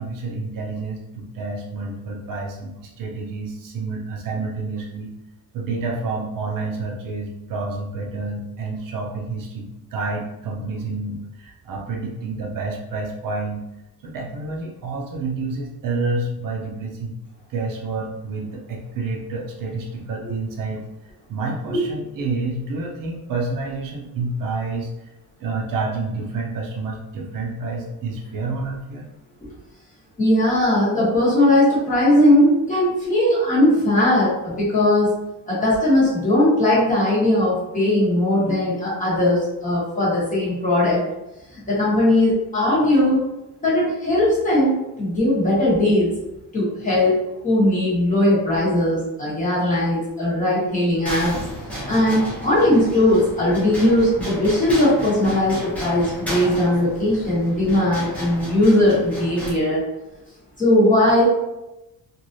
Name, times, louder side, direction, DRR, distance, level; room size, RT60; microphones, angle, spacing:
voice 1, 0.0-5.1 5.5-13.6 14.0-17.2 17.5-20.9 21.3-25.1 25.4-29.1, right 3 dB, 55° right, -2 dB, 0.6 m, -29 dB
voice 2, 30.2-35.1 35.5-41.0 41.5-43.2 43.6-46.1 46.5-51.3 51.9-59.8 60.6-61.3, left 1 dB, 20° left, -8 dB, 1.1 m, -19 dB
sound 1, 51.0-59.5, equal, 5° left, 0.7 m, -33 dB
3.1 x 2.5 x 2.6 m, 0.96 s
cardioid pair, 175°, 39 cm